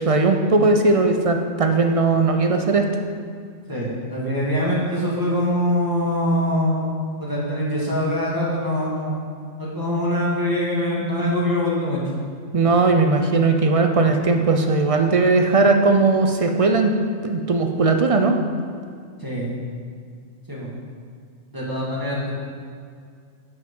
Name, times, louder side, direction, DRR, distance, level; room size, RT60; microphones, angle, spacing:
voice 1, 0.0-2.8 12.5-16.9 17.2-18.4, right 3 dB, 50° right, 5 dB, 0.4 m, -18 dB
voice 2, 3.7-6.9 7.2-9.2 9.6-12.0 19.2-19.5 20.5-20.7 21.5-22.3, equal, 15° right, -5 dB, 1.9 m, -23 dB
10.5 x 5.4 x 5.4 m, 2.2 s
omnidirectional pair, 1.4 m